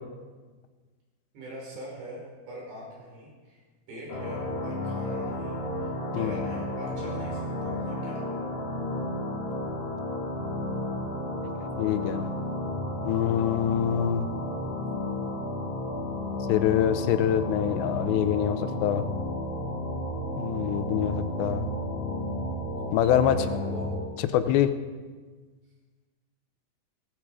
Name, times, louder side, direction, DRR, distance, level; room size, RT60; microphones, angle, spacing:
voice 1, 1.3-3.6 3.9-8.4 22.8-23.9, equal, 75° right, -3 dB, 7.2 m, -42 dB
sound 1, 4.1-24.0, left 1 dB, 35° left, 2.6 m, -32 dB
voice 2, 11.6-12.3 13.0-14.3 16.5-19.1 20.4-21.7 22.9-23.4 24.3-24.7, left 11 dB, 90° left, 11 dB, 3.0 m, -25 dB
17.5 x 15.5 x 4.8 m, 1.4 s
omnidirectional pair, 4.9 m